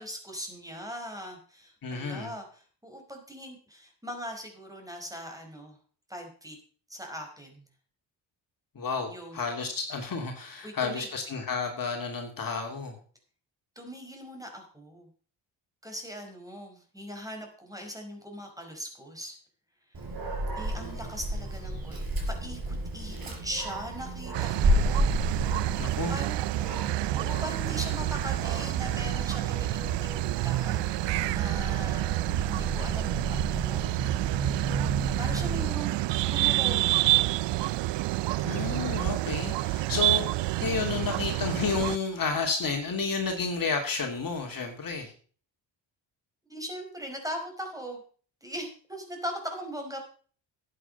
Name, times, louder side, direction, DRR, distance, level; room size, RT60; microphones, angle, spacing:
voice 1, 0.0-5.8 6.1-6.6 6.9-7.6 9.1-9.4 10.6-11.1 13.7-15.1 15.8-19.4 20.6-22.0 22.3-25.1 26.1-26.4 27.1-30.9 31.3-32.2 32.4-34.0 35.2-36.0 36.2-37.7 46.5-48.0 48.4-50.0, equal, 5° right, 4 dB, 5.0 m, -40 dB
voice 2, 1.8-2.3 8.7-12.9 25.8-26.1 38.4-45.1, left 4 dB, 45° left, 2 dB, 2.7 m, -31 dB
Dog, 19.9-35.7, right 1 dB, 50° right, 5.0 m, -33 dB
sound 1, 24.3-42.0, right 17 dB, 65° right, 0.6 m, -28 dB
11.0 x 9.0 x 5.4 m, 0.43 s
supercardioid pair, 60°, 47 cm